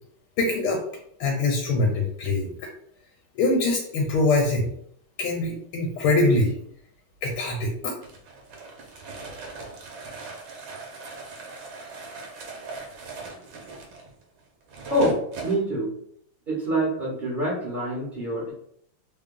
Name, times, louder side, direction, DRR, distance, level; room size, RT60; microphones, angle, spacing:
voice 1, 0.4-0.8 1.2-2.7 3.3-4.7 5.2-6.5 7.2-7.9, left 2 dB, 80° left, 0 dB, 1.5 m, -23 dB
sound 1, 8.0-15.6, right 3 dB, 70° right, 1.5 m, -39 dB
voice 2, 14.9-15.9 16.5-18.5, right 1 dB, 35° right, -7 dB, 0.8 m, -26 dB
3.6 x 2.3 x 3.6 m, 0.67 s
omnidirectional pair, 2.4 m